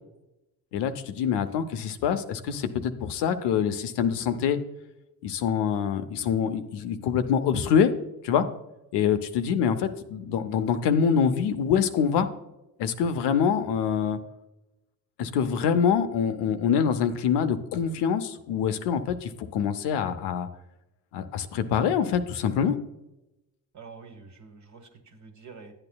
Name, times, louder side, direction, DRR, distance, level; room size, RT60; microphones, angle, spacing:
voice 1, 0.7-4.6 5.2-7.9 8.2-8.4 8.9-12.3 12.8-14.2 15.2-20.5 21.1-22.8, left 7 dB, 85° left, 9 dB, 0.8 m, -25 dB
voice 2, 23.7-25.7, right 5 dB, 45° right, 5 dB, 1.3 m, -47 dB
10.5 x 8.8 x 2.3 m, 0.94 s
cardioid pair, 85°, 40 cm